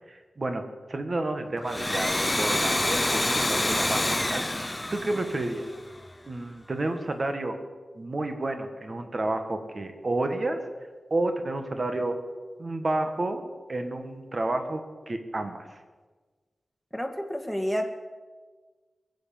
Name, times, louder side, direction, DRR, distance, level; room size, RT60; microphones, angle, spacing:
voice 1, 0.1-5.7 6.3-7.6 7.9-10.6 11.1-12.2 12.6-13.4 13.7-15.7, right 2 dB, 45° right, 6 dB, 1.7 m, -30 dB
Domestic sounds home sounds, 1.6-6.1, left 1 dB, 15° left, 0.7 m, -27 dB
voice 2, 16.9-18.0, equal, ahead, 4 dB, 1.9 m, -30 dB
22.0 x 8.2 x 7.3 m, 1.4 s
wide cardioid pair, 100°, 0 cm